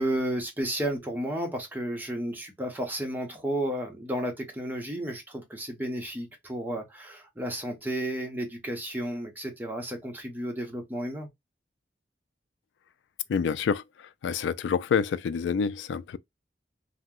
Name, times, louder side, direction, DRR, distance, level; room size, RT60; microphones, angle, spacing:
voice 1, 0.0-11.3, right 1 dB, 10° right, 0.7 m, -32 dB
voice 2, 13.3-13.8 14.2-16.2, left 6 dB, 75° left, 0.3 m, -27 dB
2.8 x 2.0 x 3.5 m
head